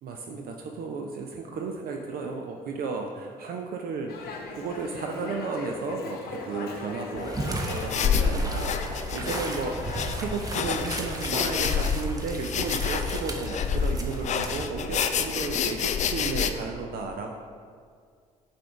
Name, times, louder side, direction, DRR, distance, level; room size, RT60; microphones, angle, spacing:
voice 1, 0.0-17.3, right 4 dB, 55° right, 2 dB, 0.5 m, -34 dB
Dog, 4.1-11.0, left 4 dB, 55° left, 0.9 m, -39 dB
sound 1, 7.1-14.7, right 2 dB, 20° right, 0.9 m, -35 dB
sound 2, 7.7-16.5, left 6 dB, 40° left, 0.4 m, -28 dB
7.4 x 2.6 x 4.8 m, 2.1 s
hypercardioid pair, 50°, 18 cm